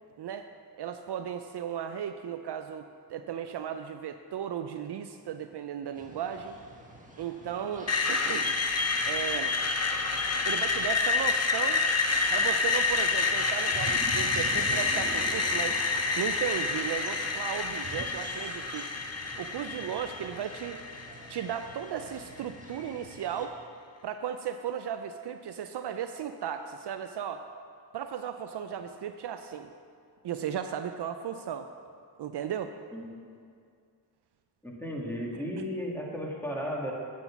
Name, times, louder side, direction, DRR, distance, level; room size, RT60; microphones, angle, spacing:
voice 1, 0.2-0.5 0.8-6.6 7.2-8.6 9.1-9.6 10.4-11.8 12.3-15.8 16.2-18.9 19.4-20.8 21.3-23.6 24.0-27.4 27.9-29.7 30.2-31.7 32.2-32.7, right 8 dB, 65° right, 8 dB, 0.5 m, -35 dB
sound 1, 5.9-23.5, right 1 dB, 15° right, 1.6 m, -47 dB
Screech, 7.9-21.8, left 4 dB, 35° left, 0.9 m, -28 dB
sound 2, 12.2-18.1, right 4 dB, 35° right, 0.9 m, -42 dB
voice 2, 34.6-36.9, equal, 5° left, -2 dB, 2.1 m, -34 dB
8.9 x 6.1 x 5.9 m, 2.2 s
cardioid pair, 45°, 44 cm